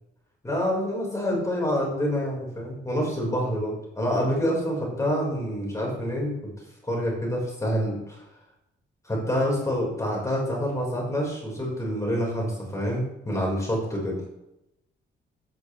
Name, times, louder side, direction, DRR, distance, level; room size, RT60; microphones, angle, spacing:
voice 1, 0.4-6.3 6.8-8.2 9.0-14.2, equal, 15° left, -3 dB, 4.5 m, -27 dB
12.0 x 9.0 x 3.2 m, 0.87 s
cardioid pair, 90°, 20 cm